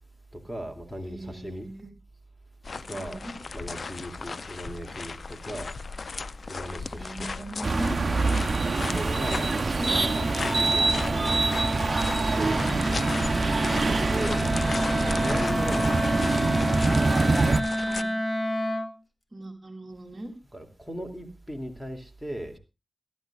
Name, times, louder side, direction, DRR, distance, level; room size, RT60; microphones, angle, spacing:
voice 1, 0.3-1.7 2.9-3.2 3.5-5.7 6.5-7.5 8.9-11.5 12.3-12.6 13.9-14.5 15.0-16.0 16.8-17.6 20.5-22.6, equal, ahead, 5 dB, 2.6 m, -37 dB
voice 2, 1.0-1.9 2.9-3.3 6.9-8.0 9.2-10.0 17.8-18.1 19.3-20.3, right 1 dB, 30° right, -1 dB, 2.8 m, -40 dB
sound 1, 2.6-18.0, left 4 dB, 60° left, 0.6 m, -36 dB
Wind instrument woodwind instrument, 7.5-19.0, left 1 dB, 20° left, 1.7 m, -31 dB
sound 2, 7.6-17.6, right 3 dB, 55° right, 0.9 m, -25 dB
23.0 x 12.0 x 2.4 m, 0.27 s
cardioid pair, 65°, 0 cm